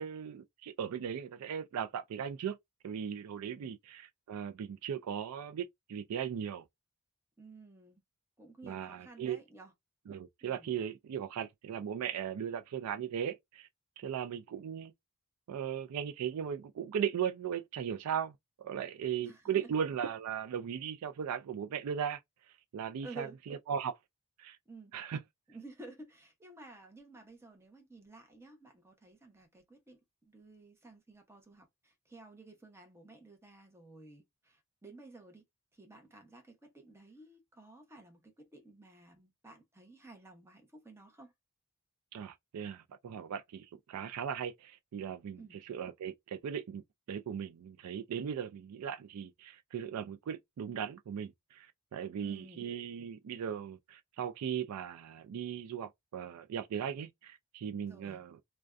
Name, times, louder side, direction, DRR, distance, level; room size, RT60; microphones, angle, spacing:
voice 1, 0.0-2.6 2.8-6.6 8.6-9.4 10.1-13.7 14.0-14.9 15.5-18.3 18.6-22.2 22.7-24.0 24.4-24.6 24.9-25.2 42.1-46.8 47.1-51.7 51.9-58.4, right 8 dB, 90° right, 0.3 m, -38 dB
voice 2, 7.4-8.0 8.4-9.7 10.4-10.7 19.2-19.7 23.0-23.4 24.7-24.9 25.5-35.4 35.7-41.3 45.3-45.6 52.1-52.6 57.8-58.2, right 3 dB, 10° right, 0.7 m, -53 dB
2.5 x 2.2 x 2.2 m
head